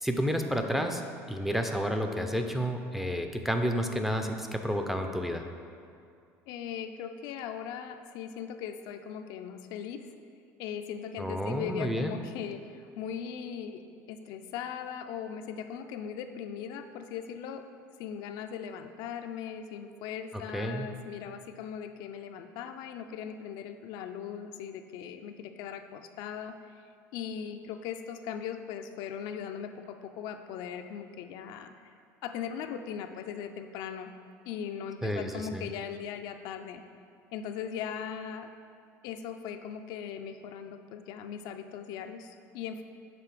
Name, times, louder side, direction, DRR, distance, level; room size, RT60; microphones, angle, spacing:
voice 1, 0.0-1.0 1.3-5.5 11.2-12.2 20.3-20.9 35.0-35.7, equal, 5° right, 4 dB, 0.4 m, -30 dB
voice 2, 6.5-10.1 10.6-13.8 14.1-17.6 18.0-26.8 27.1-31.7 32.2-34.1 34.5-36.8 37.3-38.5 39.0-42.8, left 8 dB, 70° left, 7 dB, 0.4 m, -39 dB
6.8 x 3.3 x 4.8 m, 2.4 s
supercardioid pair, 105°, 7 cm